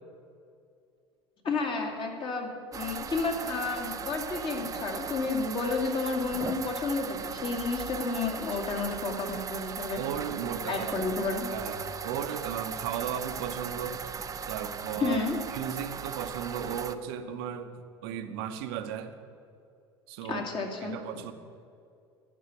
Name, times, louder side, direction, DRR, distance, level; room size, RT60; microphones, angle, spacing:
voice 1, 1.4-10.0 10.7-11.5 15.0-15.4 20.3-21.0, left 4 dB, 35° left, 1 dB, 2.2 m, -31 dB
sound 1, 2.7-16.9, right 6 dB, 25° right, 0.5 m, -38 dB
voice 2, 9.9-11.1 11.5-14.1 14.5-19.1 20.1-20.4 20.8-21.3, right 8 dB, 60° right, 8 dB, 0.8 m, -36 dB
10.5 x 6.3 x 8.7 m, 2.4 s
figure-of-eight pair, 70°, 14 cm